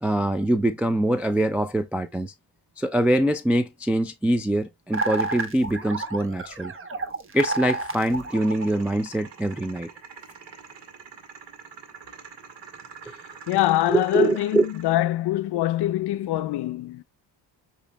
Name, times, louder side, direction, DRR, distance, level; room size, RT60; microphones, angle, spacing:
voice 1, 0.0-2.3 2.8-6.7 7.3-9.9 13.1-13.2 13.9-14.7, right 1 dB, 5° right, 0.3 m, -24 dB
sound 1, 4.9-9.2, right 3 dB, 30° right, 1.1 m, -31 dB
sound 2, 8.0-15.0, right 6 dB, 65° right, 1.6 m, -45 dB
voice 2, 13.5-17.0, left 14 dB, 60° left, 0.6 m, -24 dB
8.1 x 2.9 x 2.3 m
cardioid pair, 95°, 45 cm